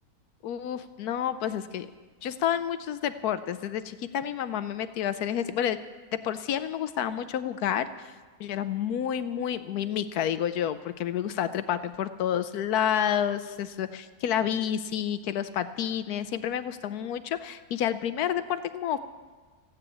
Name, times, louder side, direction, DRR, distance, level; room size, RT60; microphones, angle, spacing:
voice 1, 0.4-1.9 2.2-5.8 6.2-8.1 8.4-19.0, left 9 dB, 80° left, 12 dB, 1.2 m, -29 dB
15.5 x 9.7 x 8.5 m, 1.4 s
omnidirectional pair, 1.6 m